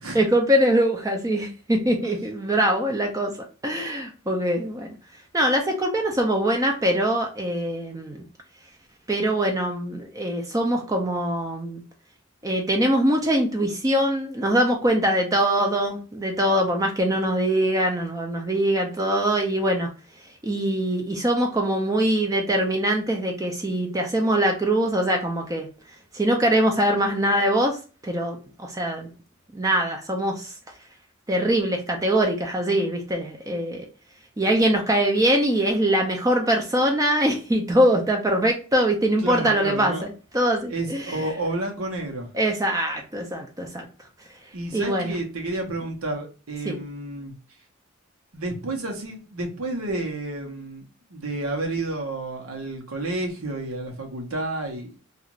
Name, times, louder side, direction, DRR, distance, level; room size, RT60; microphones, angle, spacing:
voice 1, 0.1-3.3 3.6-5.0 5.3-8.2 9.1-11.8 12.4-19.9 20.4-25.7 26.1-27.8 28.0-29.1 29.5-30.5 31.3-33.9 34.4-41.2 42.3-43.9 44.7-45.2 46.6-46.8, right 1 dB, 15° right, 0.5 m, -23 dB
voice 2, 39.2-40.1 40.7-42.3 44.5-47.3 48.3-54.9, right 2 dB, 90° right, 0.9 m, -30 dB
2.5 x 2.4 x 2.9 m
head